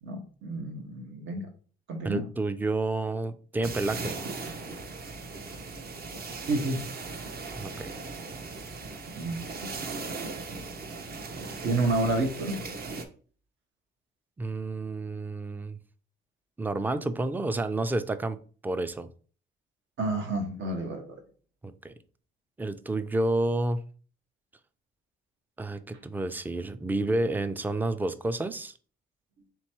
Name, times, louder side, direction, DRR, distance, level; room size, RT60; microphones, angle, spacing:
voice 1, 0.0-1.5 1.9-2.3 6.5-6.8 9.2-9.7 11.6-12.6 20.0-21.2, right 2 dB, 75° right, 3 dB, 1.2 m, -30 dB
voice 2, 2.0-4.2 7.5-7.9 14.4-15.8 16.6-19.1 21.6-21.9 22.6-23.8 25.6-28.7, right 2 dB, 10° right, 12 dB, 0.4 m, -30 dB
sound 1, 3.6-13.0, right 3 dB, 50° right, 0.8 m, -38 dB
3.6 x 3.0 x 4.4 m, 0.41 s
cardioid pair, 90°, 20 cm